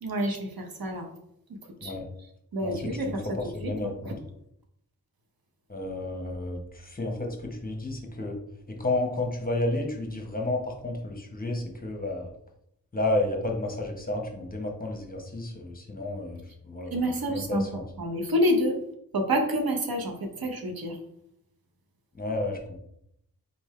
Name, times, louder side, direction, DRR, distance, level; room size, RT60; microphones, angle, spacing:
voice 1, 0.0-1.1 1.8-1.9 2.2-3.4 3.6-4.1 16.9-18.8 19.1-21.0, equal, 70° right, 3 dB, 0.9 m, -28 dB
voice 2, 3.1-4.1 5.7-7.4 7.6-8.4 8.7-12.3 12.9-16.9 17.3-17.8 22.2-22.6, left 2 dB, 25° left, 1 dB, 1.0 m, -31 dB
4.2 x 3.6 x 3.1 m, 0.75 s
wide cardioid pair, 85°, 37 cm